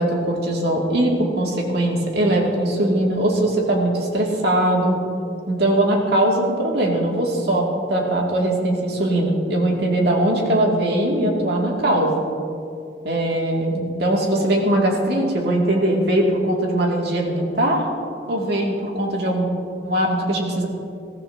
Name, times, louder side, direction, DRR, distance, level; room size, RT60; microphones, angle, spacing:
voice 1, 0.0-5.0 5.5-12.2 13.0-17.9 18.3-19.5 19.8-20.7, right 1 dB, 65° right, -2 dB, 2.6 m, -20 dB
22.0 x 15.5 x 2.9 m, 2.6 s
head